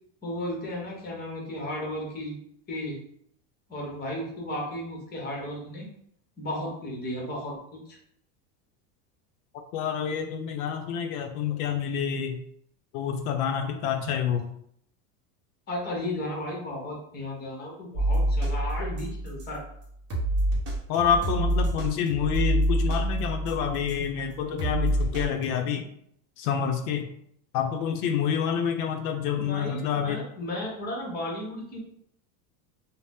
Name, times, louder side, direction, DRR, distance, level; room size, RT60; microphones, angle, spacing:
voice 1, 0.2-2.4 2.7-3.0 3.7-5.9 6.4-8.0 15.7-19.6 29.3-31.8, left 1 dB, 20° left, -1 dB, 0.8 m, -34 dB
voice 2, 9.7-12.4 12.9-14.5 20.9-25.9 26.4-27.1 27.5-30.2, left 7 dB, 80° left, 5 dB, 0.5 m, -28 dB
sound 1, 17.9-19.6 20.1-24.1 24.6-25.5, right 1 dB, 30° right, 0.9 m, -27 dB
2.6 x 2.0 x 3.4 m, 0.70 s
supercardioid pair, 145°, 45 cm